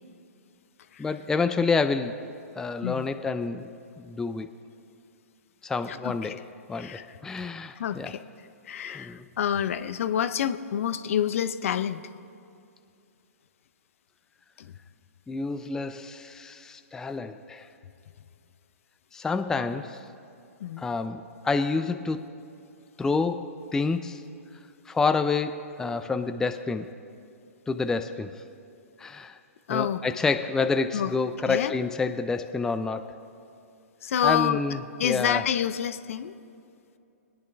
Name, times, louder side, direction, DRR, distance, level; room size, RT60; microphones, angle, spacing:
voice 1, 1.0-2.1 2.6-3.7 4.0-4.5 5.6-6.4 6.7-8.1 8.9-9.3 15.3-17.7 19.1-20.0 20.8-22.3 23.0-24.2 24.9-26.9 27.7-28.4 29.0-29.4 29.7-33.1 34.2-35.4, left 4 dB, 5° left, 8 dB, 0.4 m, -28 dB
voice 2, 5.9-6.3 6.7-7.1 7.7-8.2 8.7-12.0 14.6-14.7 20.6-20.9 29.7-30.0 30.9-31.1 31.5-31.7 34.0-34.6 35.0-36.3, left 9 dB, 60° left, 13 dB, 0.6 m, -28 dB
21.5 x 10.0 x 3.4 m, 2.6 s
hypercardioid pair, 125°, 8 cm